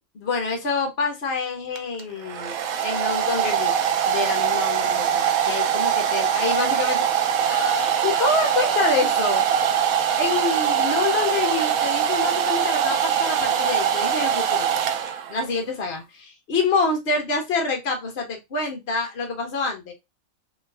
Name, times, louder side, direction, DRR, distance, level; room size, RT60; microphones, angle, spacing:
voice 1, 0.1-2.5 2.8-3.7 4.0-7.1 7.4-9.4 10.2-14.9 15.3-19.9, left 4 dB, 50° left, 3 dB, 1.3 m, -27 dB
Domestic sounds home sounds, 1.8-15.5, right 8 dB, 90° right, 1.1 m, -22 dB
3.8 x 2.6 x 3.4 m, 0.21 s
omnidirectional pair, 1.4 m